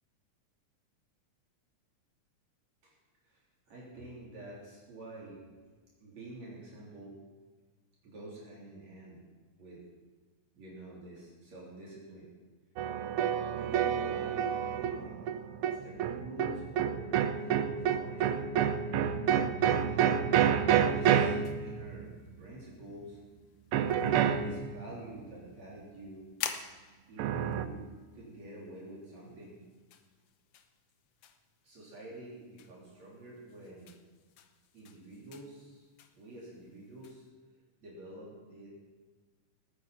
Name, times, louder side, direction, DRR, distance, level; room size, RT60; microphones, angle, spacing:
voice 1, 3.2-5.5 5.7-7.1 8.0-9.2 9.6-9.8 10.6-12.3 13.0-13.1 13.5-18.6 19.6-21.3 21.6-22.1 22.4-23.2 23.9-26.2 27.1-29.6 31.6-34.0 34.7-35.9 36.1-37.2 37.8-38.7, right 1 dB, 65° right, -6 dB, 4.8 m, -48 dB
sound 1, 12.8-22.3 23.7-25.0 27.2-27.6, right 8 dB, 85° right, 1.2 m, -29 dB
sound 2, 20.8-37.3, left 8 dB, 65° left, 1.6 m, -50 dB
19.0 x 10.0 x 5.8 m, 1.4 s
omnidirectional pair, 3.4 m